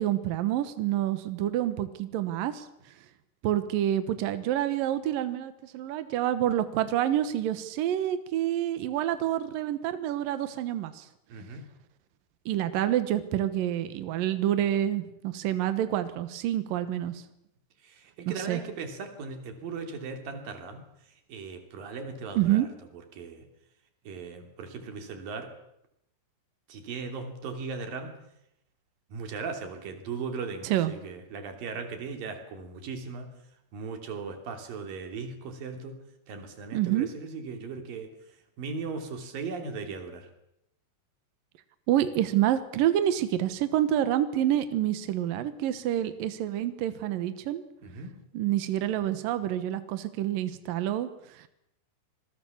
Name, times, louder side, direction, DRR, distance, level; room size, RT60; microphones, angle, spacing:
voice 1, 0.0-2.7 3.4-11.1 12.5-17.2 18.3-18.6 22.4-22.7 30.6-30.9 36.7-37.1 41.9-47.6 48.3-51.5, right 12 dB, 85° right, 11 dB, 1.9 m, -28 dB
voice 2, 11.3-11.7 17.8-20.9 21.3-22.7 23.1-23.5 24.0-25.5 26.7-28.2 29.1-33.3 33.7-38.1 38.6-40.3 47.8-48.2, right 4 dB, 50° right, 5 dB, 4.2 m, -38 dB
26.5 x 21.5 x 7.2 m, 0.79 s
omnidirectional pair, 5.9 m